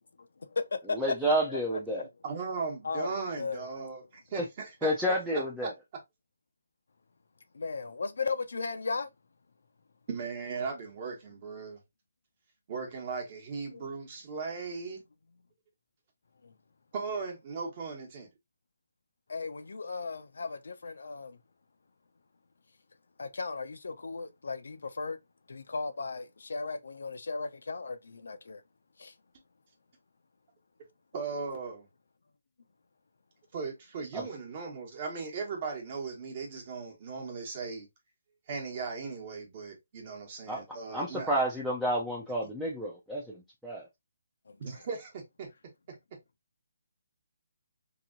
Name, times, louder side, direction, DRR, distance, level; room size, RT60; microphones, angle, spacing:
voice 1, 0.9-2.1 4.3-4.4 4.8-5.7 34.1-34.3 40.5-40.6 40.9-43.4 43.6-43.9, right 1 dB, ahead, 0.4 m, -30 dB
voice 2, 2.2-6.0 10.1-11.8 12.7-15.0 16.9-18.3 31.1-31.9 33.5-37.9 38.5-41.4 42.4-42.5 44.6-46.0, right 4 dB, 35° right, 1.0 m, -38 dB
voice 3, 2.8-3.7 7.5-9.1 13.7-13.9 16.4-16.5 19.3-21.4 23.2-25.2 25.5-28.6 29.0-29.1 44.5-44.8, left 4 dB, 75° left, 0.5 m, -36 dB
2.9 x 2.7 x 2.5 m
hypercardioid pair, 170°, 0 cm